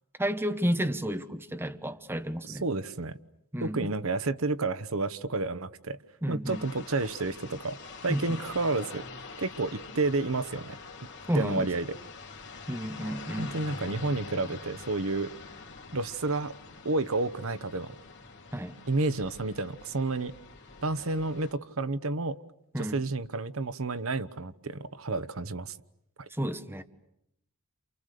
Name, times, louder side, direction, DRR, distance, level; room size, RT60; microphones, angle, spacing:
voice 1, 0.2-2.6 3.5-3.9 6.2-6.6 8.1-8.2 11.3-11.7 12.7-13.5 18.5-18.7 22.7-23.0 26.4-26.8, equal, 10° right, 1.2 m, -31 dB
voice 2, 2.4-3.2 3.6-6.0 6.3-7.8 8.0-9.0 9.4-10.8 11.3-12.0 13.4-15.3 15.9-16.5 16.8-18.0 18.9-20.3 20.8-22.4 22.8-25.8 26.2-26.3, right 3 dB, 65° right, 1.0 m, -30 dB
sound 1, 6.4-21.5, left 4 dB, 55° left, 3.2 m, -45 dB
30.0 x 28.5 x 6.7 m
head